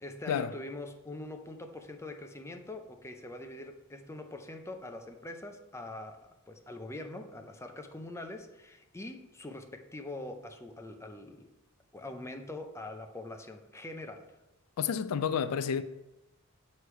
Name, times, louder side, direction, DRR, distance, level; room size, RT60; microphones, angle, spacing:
voice 1, 0.0-11.5 11.9-14.3, left 2 dB, 10° left, 0.5 m, -43 dB
voice 2, 14.8-15.8, left 7 dB, 80° left, 0.4 m, -30 dB
7.9 x 3.2 x 5.6 m
head